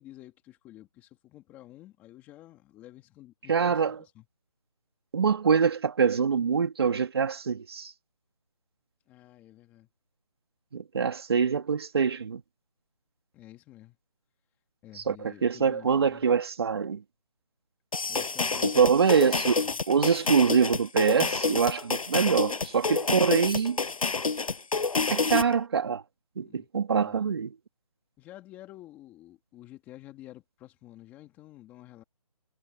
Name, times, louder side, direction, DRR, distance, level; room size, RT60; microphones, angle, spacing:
voice 1, 0.0-4.3 9.1-9.9 13.3-14.0 14.8-16.2 18.1-19.2 19.6-19.8 26.4-26.7 27.0-27.2 28.2-32.0, left 15 dB, 10° left, 2.6 m, -50 dB
voice 2, 3.5-4.0 5.1-7.9 10.7-12.4 14.9-17.0 18.6-23.8 25.1-26.0 26.4-27.5, right 6 dB, 40° right, 2.6 m, -25 dB
sound 1, 17.9-25.6, left 4 dB, 60° left, 6.5 m, -28 dB
figure-of-eight pair, 170°, 20 cm